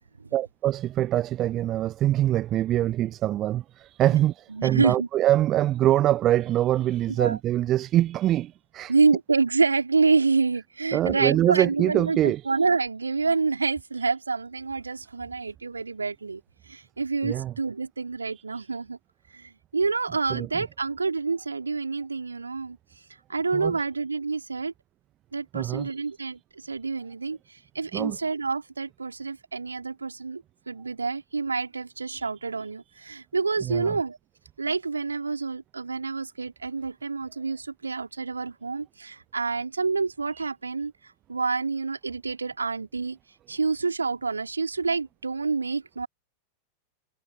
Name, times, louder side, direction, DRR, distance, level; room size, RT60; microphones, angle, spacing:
voice 1, 0.3-8.9 10.9-12.4 17.2-17.5 20.3-20.5 23.5-23.8 25.5-25.9 27.9-28.2 33.6-34.0, right 13 dB, 30° right, 0.7 m, -24 dB
voice 2, 4.5-5.1 7.2-7.4 8.9-19.0 19.3-22.8 23.3-24.7 25.3-34.2 34.6-40.9 41.3-43.2 43.5-46.1, right 4 dB, 75° right, 2.9 m, -27 dB
figure-of-eight pair, 90°, 0 cm